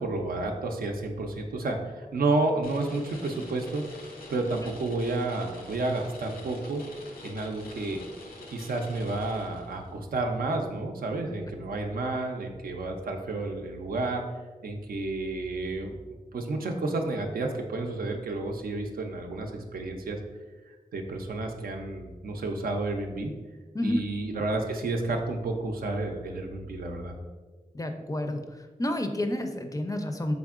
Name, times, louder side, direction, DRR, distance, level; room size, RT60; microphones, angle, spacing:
voice 1, 0.0-3.8 4.3-6.8 7.2-8.0 8.5-14.2 14.6-16.0 16.3-20.2 20.9-23.3 23.8-27.1, right 2 dB, 85° right, 3 dB, 0.4 m, -31 dB
sound 1, 2.6-9.9, left 2 dB, 85° left, 0.6 m, -45 dB
voice 2, 27.7-28.4 28.8-30.3, left 1 dB, 25° left, 6 dB, 0.4 m, -29 dB
3.7 x 3.4 x 2.4 m, 1.3 s
cardioid pair, 40°, 15 cm